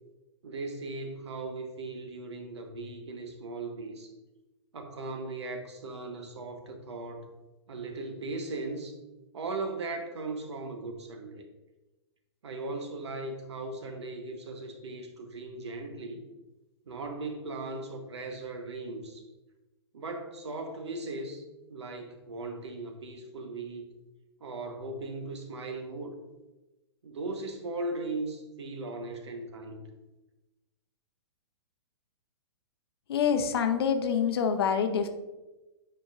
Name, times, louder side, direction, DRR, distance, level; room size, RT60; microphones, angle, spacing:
voice 1, 0.4-4.1 4.7-7.3 7.7-8.9 9.3-11.4 12.4-16.2 16.9-19.2 19.9-21.4 21.7-23.9 24.4-26.2 27.0-29.9, right 2 dB, 70° right, 5 dB, 1.2 m, -38 dB
voice 2, 33.1-35.1, left 7 dB, 55° left, 7 dB, 0.8 m, -26 dB
8.9 x 5.0 x 2.4 m, 1.1 s
figure-of-eight pair, 115°, 15 cm